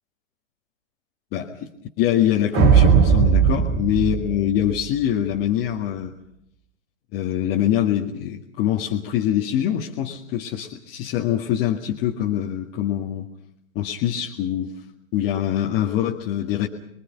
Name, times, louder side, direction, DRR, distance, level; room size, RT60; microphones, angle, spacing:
voice 1, 1.3-1.7 2.0-6.1 7.1-13.3 13.8-14.7 15.1-16.7, left 11 dB, 25° left, -2 dB, 2.0 m, -24 dB
sound 1, 2.5-5.0, right 7 dB, 25° right, 1.9 m, -17 dB
27.5 x 22.5 x 5.9 m, 0.76 s
figure-of-eight pair, 120°, 39 cm